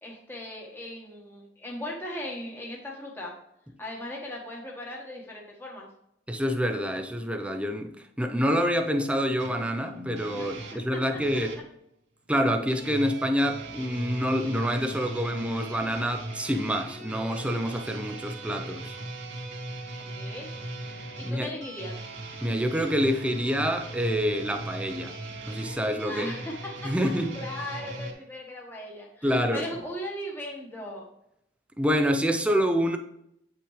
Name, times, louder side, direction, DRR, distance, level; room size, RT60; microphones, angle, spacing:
voice 1, 0.0-3.3 3.8-5.9 10.4-10.7 10.9-11.0 20.1-20.5 21.2-21.9 25.9-26.9 27.3-31.1, left 1 dB, 10° left, 1.3 m, -38 dB
voice 2, 6.3-11.6 12.3-19.0 21.2-21.5 22.4-25.1 25.5-26.3 26.8-27.4 29.2-29.7 31.8-33.0, equal, 5° right, 0.7 m, -27 dB
sound 1, 9.4-11.6 12.7-28.1, right 2 dB, 75° right, 2.4 m, -39 dB
8.8 x 5.9 x 3.2 m
head